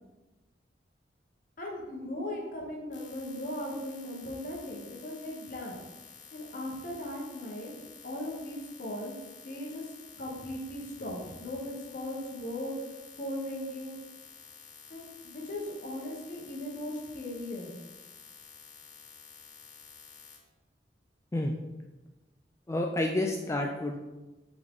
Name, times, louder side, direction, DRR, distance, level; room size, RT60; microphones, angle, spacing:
voice 1, 1.6-5.8 6.3-7.7 8.0-9.1 9.4-9.9 10.2-12.7 13.2-14.0 14.9-17.7, left 1 dB, 50° left, -1 dB, 1.2 m, -38 dB
sound 1, 2.9-20.4, left 4 dB, 85° left, 1.4 m, -51 dB
voice 2, 22.7-24.0, left 1 dB, 15° left, 1 dB, 0.4 m, -29 dB
7.8 x 3.8 x 3.7 m, 1.1 s
head